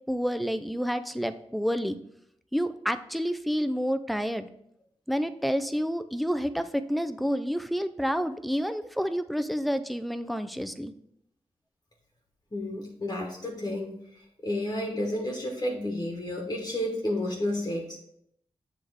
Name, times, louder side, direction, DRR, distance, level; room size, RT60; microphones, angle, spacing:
voice 1, 0.1-2.0 2.5-4.5 5.1-10.9, equal, ahead, 11 dB, 0.4 m, -29 dB
voice 2, 12.5-18.0, left 1 dB, 35° left, -1 dB, 1.2 m, -31 dB
7.7 x 3.3 x 4.7 m, 0.73 s
cardioid pair, 70°, 11 cm